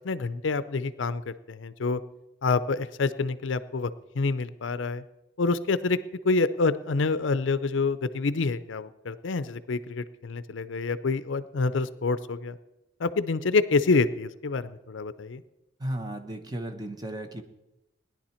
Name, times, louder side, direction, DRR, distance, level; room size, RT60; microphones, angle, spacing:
voice 1, 0.0-2.0 2.4-3.9 4.2-5.0 5.4-6.0 6.2-12.6 13.0-15.4, left 3 dB, 80° left, 14 dB, 0.5 m, -27 dB
voice 2, 15.8-17.4, right 1 dB, 20° right, 6 dB, 0.8 m, -34 dB
17.0 x 10.5 x 4.4 m, 0.96 s
head